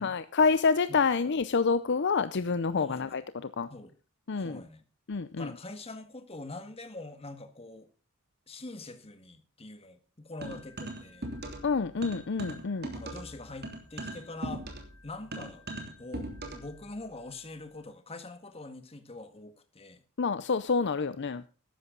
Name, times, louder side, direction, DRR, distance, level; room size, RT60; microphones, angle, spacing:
voice 1, 0.0-3.7 4.3-4.6 5.1-5.5 11.6-12.9 20.2-21.5, left 5 dB, 55° left, 0.6 m, -28 dB
voice 2, 4.4-4.8 5.4-7.9 8.5-11.3 12.9-14.7 15.0-15.7 16.0-20.0, left 2 dB, 30° left, 1.8 m, -44 dB
sound 1, 10.4-11.7 12.0-16.7, right 1 dB, 50° right, 3.1 m, -39 dB
14.0 x 11.5 x 3.9 m
head